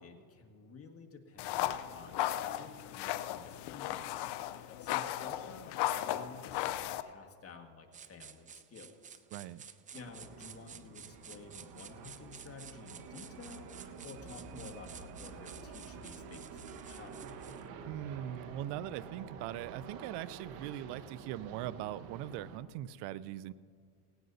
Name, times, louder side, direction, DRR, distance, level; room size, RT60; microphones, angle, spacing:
voice 1, 0.0-9.2 9.9-17.2, left 4 dB, 30° left, 2 dB, 1.7 m, -52 dB
sound 1, 1.4-7.0, left 13 dB, 55° left, 0.7 m, -36 dB
sound 2, 7.9-17.7, right 8 dB, 20° right, 0.3 m, -53 dB
voice 2, 9.3-9.6 17.9-23.5, right 13 dB, 60° right, 18 dB, 0.6 m, -41 dB
sound 3, 9.9-22.6, right 5 dB, 85° right, 1.5 m, -49 dB
18.0 x 17.0 x 2.7 m, 2.2 s
supercardioid pair, 105°, 48 cm